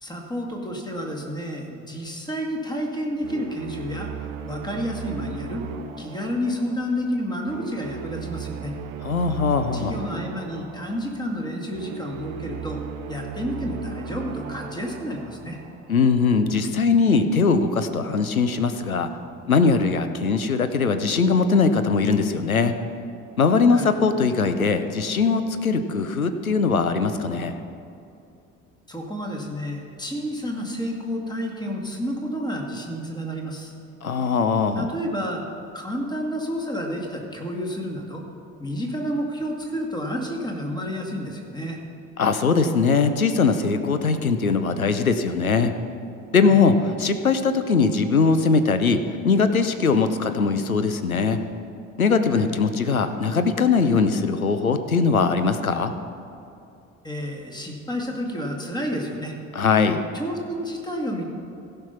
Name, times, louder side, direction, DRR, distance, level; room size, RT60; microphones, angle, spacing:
voice 1, 0.0-4.1 4.5-5.6 6.0-8.7 9.7-12.8 13.1-15.6 23.7-23.9 28.9-33.7 34.8-35.4 35.7-38.2 38.6-41.8 46.4-46.6 52.3-52.5 57.0-59.4 60.1-61.3, equal, 10° left, 1 dB, 1.9 m, -30 dB
sound 1, 3.2-16.3, right 6 dB, 70° right, 0.8 m, -37 dB
voice 2, 9.0-10.0 15.9-19.1 19.4-22.7 23.4-27.6 34.0-34.9 42.2-45.7 46.3-51.4 52.0-55.9 59.5-60.0, left 4 dB, 90° left, 10 dB, 0.6 m, -21 dB
16.0 x 5.6 x 5.8 m, 2.6 s
figure-of-eight pair, 60°, 41 cm